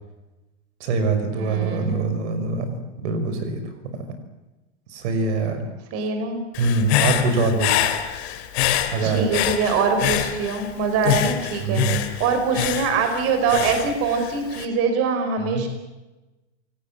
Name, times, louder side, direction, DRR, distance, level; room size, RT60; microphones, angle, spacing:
voice 1, 0.8-2.7 3.0-3.6 4.9-5.7 6.6-7.8 8.9-9.3 11.6-12.0 15.5-15.7, right 3 dB, 65° right, 8 dB, 5.8 m, -23 dB
voice 2, 1.3-1.9 5.9-6.4 9.0-11.8 12.2-15.7, right 5 dB, 40° right, 6 dB, 5.4 m, -23 dB
Human voice / Breathing, 6.5-10.7 11.0-14.6, left 11 dB, 60° left, 3.3 m, -25 dB
27.5 x 18.5 x 7.6 m, 1.1 s
supercardioid pair, 135°, 36 cm